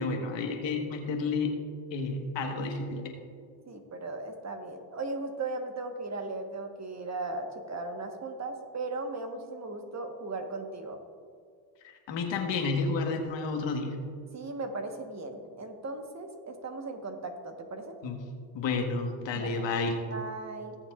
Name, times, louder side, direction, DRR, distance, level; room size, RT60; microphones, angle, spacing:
voice 1, 0.0-1.5 1.9-3.0 12.1-13.9 18.0-18.2 18.6-20.0, left 4 dB, 60° left, 3 dB, 1.6 m, -30 dB
voice 2, 3.7-11.0 14.3-18.0 19.3-19.7 20.1-20.8, right 2 dB, 35° right, 5 dB, 1.3 m, -37 dB
19.0 x 7.1 x 2.5 m, 2.1 s
supercardioid pair, 75°, 49 cm